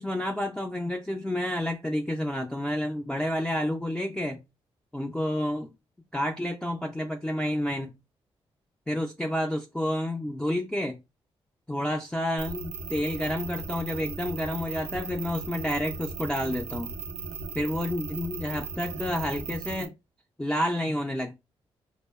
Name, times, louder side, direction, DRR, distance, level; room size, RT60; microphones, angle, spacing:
voice 1, 0.0-4.4 4.9-5.7 6.1-7.9 8.9-11.0 11.7-16.9 17.5-19.9 20.4-21.4, left 1 dB, 10° left, 0.3 m, -29 dB
sound 1, 12.4-19.9, right 4 dB, 80° right, 0.4 m, -37 dB
2.7 x 2.1 x 2.2 m
cardioid pair, 70°, 11 cm